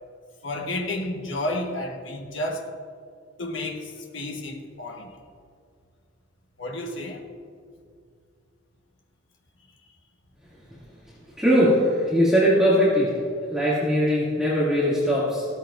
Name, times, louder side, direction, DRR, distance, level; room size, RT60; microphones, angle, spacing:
voice 1, 0.4-2.7 3.4-5.1 6.6-7.2, left 1 dB, 75° left, 1 dB, 1.2 m, -31 dB
voice 2, 11.4-13.2 13.5-15.5, equal, 5° right, -9 dB, 2.3 m, -20 dB
16.0 x 13.5 x 2.5 m, 2.3 s
head